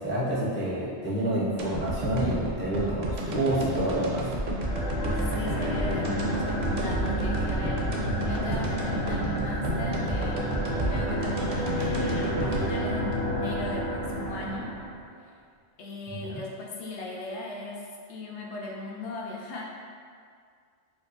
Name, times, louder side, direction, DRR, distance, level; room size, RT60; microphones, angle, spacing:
voice 1, 0.0-4.3 16.1-16.3, right 1 dB, 20° left, -8 dB, 0.3 m, -28 dB
sound 1, 1.6-13.8 14.2-14.3, right 1 dB, 60° right, 0.5 m, -31 dB
sound 2, 4.6-15.0, equal, 55° left, 0.7 m, -30 dB
voice 2, 5.0-14.7 15.2-15.3 15.8-19.6, left 2 dB, 75° left, -2 dB, 0.9 m, -38 dB
4.7 x 2.1 x 2.5 m, 2.1 s
omnidirectional pair, 1.2 m